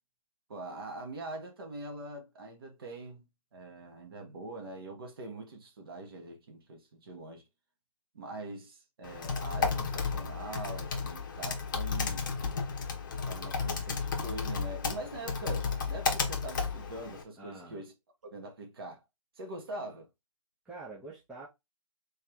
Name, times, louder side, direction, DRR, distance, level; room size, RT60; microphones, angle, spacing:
voice 1, 0.5-3.2 3.5-7.4 8.1-12.3 13.2-17.9 18.2-19.0 19.4-20.1, right 2 dB, 45° right, 1.7 m, -43 dB
Typing, 9.0-17.2, left 5 dB, 35° left, 1.0 m, -33 dB
voice 2, 17.4-17.8 20.6-21.5, right 3 dB, 5° right, 0.8 m, -46 dB
4.4 x 3.2 x 3.5 m
figure-of-eight pair, 155°, 17 cm